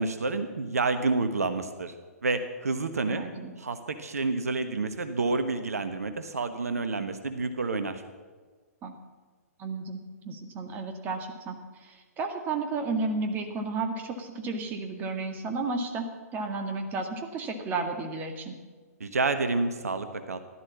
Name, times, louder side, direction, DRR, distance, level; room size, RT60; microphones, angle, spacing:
voice 1, 0.0-1.9 2.2-3.2 3.6-8.0 19.0-20.4, right 3 dB, 70° right, 9 dB, 1.2 m, -29 dB
voice 2, 3.1-3.6 8.8-9.0 9.6-16.1 16.3-18.5, right 3 dB, 20° right, 4 dB, 2.0 m, -33 dB
15.5 x 12.0 x 7.4 m, 1.4 s
figure-of-eight pair, 120°, 9 cm